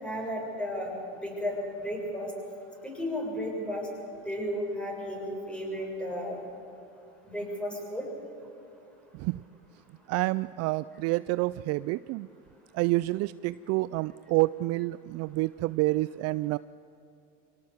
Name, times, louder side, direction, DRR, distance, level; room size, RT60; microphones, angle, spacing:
voice 1, 0.0-2.3 2.8-3.9 4.2-6.4 7.2-8.1, equal, 5° left, 0 dB, 6.6 m, -34 dB
voice 2, 10.1-12.3 12.7-16.6, right 20 dB, 50° right, 17 dB, 0.4 m, -28 dB
24.5 x 18.0 x 7.3 m, 2.6 s
supercardioid pair, 100°, 33 cm